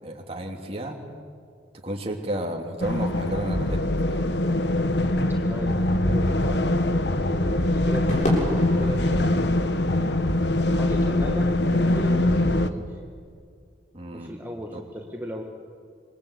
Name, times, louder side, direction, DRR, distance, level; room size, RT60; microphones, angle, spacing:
voice 1, 0.0-1.0 1.8-4.3 13.9-14.3 14.7-14.8, right 1 dB, 35° right, 1 dB, 2.9 m, -32 dB
sound 1, 2.8-12.7, left 1 dB, 65° left, 1.2 m, -23 dB
voice 2, 5.3-6.7 7.2-10.1 10.8-13.0 14.1-15.4, equal, 10° right, 1 dB, 1.7 m, -36 dB
Crowd / Fireworks, 8.1-12.6, equal, 45° left, 6.5 m, -33 dB
27.0 x 23.0 x 8.4 m, 2.2 s
head